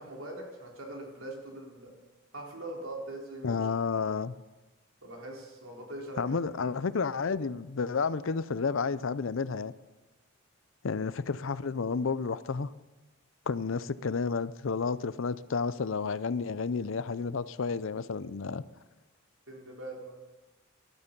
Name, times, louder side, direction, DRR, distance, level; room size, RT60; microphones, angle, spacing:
voice 1, 0.0-1.9 2.3-3.7 5.0-6.4 19.5-20.1, right 1 dB, 80° right, -1 dB, 4.0 m, -42 dB
voice 2, 3.4-4.4 6.2-9.7 10.8-12.7 13.5-18.6, left 5 dB, 70° left, 16 dB, 0.5 m, -31 dB
19.0 x 12.5 x 5.3 m, 1.2 s
head